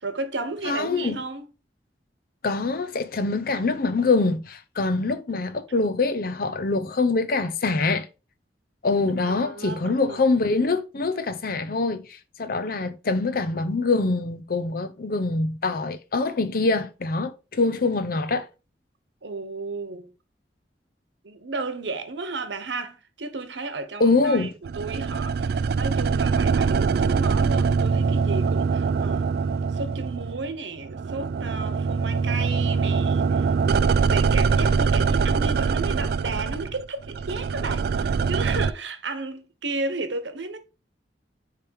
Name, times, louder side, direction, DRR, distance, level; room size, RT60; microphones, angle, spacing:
voice 1, 0.0-1.5 9.2-10.2 19.2-20.1 21.2-29.3 29.7-40.6, right 3 dB, 90° right, 1.1 m, -33 dB
voice 2, 0.6-1.2 2.4-8.1 8.8-18.5 24.0-24.5, left 3 dB, 55° left, 0.7 m, -24 dB
sound 1, 24.6-30.6 30.8-38.7, right 5 dB, 60° right, 0.3 m, -23 dB
6.6 x 3.4 x 4.6 m
head